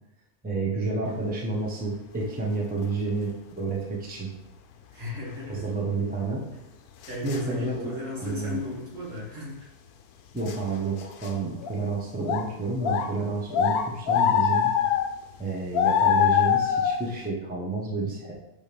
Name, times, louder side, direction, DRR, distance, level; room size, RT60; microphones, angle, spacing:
voice 1, 0.4-4.3 5.5-6.4 7.2-7.9 8.2-8.6 10.3-14.7 15.4-18.3, right 3 dB, 5° right, -4 dB, 0.9 m, -30 dB
sound 1, 2.8-2.9 6.2-6.3 7.0-7.4 8.4-8.5 10.5-10.6 11.0-11.3 11.6-11.7 12.2-12.4 12.8-13.1 13.5-15.1 15.7-17.0, left 8 dB, 75° left, 1.1 m, -23 dB
voice 2, 4.9-5.7 7.1-9.7, left 2 dB, 55° right, -5 dB, 2.5 m, -35 dB
10.0 x 3.5 x 3.5 m, 0.93 s
omnidirectional pair, 1.6 m